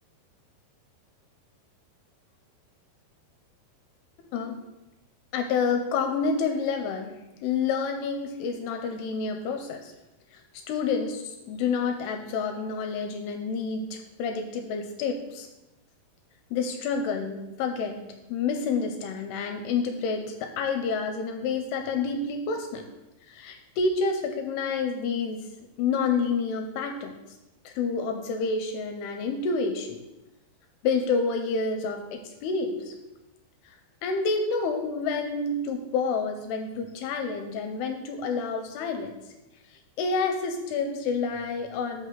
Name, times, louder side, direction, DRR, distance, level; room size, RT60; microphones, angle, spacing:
voice 1, 5.3-7.1 7.4-9.9 10.3-15.5 16.5-22.8 23.3-25.5 25.8-27.1 27.7-30.0 30.8-32.9 34.0-39.1 40.0-42.1, left 4 dB, 85° left, 5 dB, 2.6 m, -29 dB
6.6 x 5.6 x 6.6 m, 0.99 s
omnidirectional pair, 4.8 m